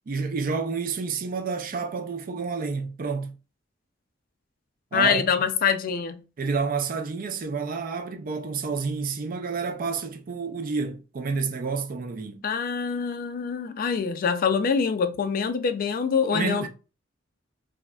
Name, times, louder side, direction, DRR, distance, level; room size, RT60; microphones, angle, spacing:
voice 1, 0.1-3.4 4.9-5.2 6.4-12.4 16.3-16.7, right 4 dB, 50° right, 0.4 m, -29 dB
voice 2, 4.9-6.2 12.4-16.7, left 6 dB, 50° left, 0.3 m, -25 dB
4.7 x 2.1 x 2.3 m
head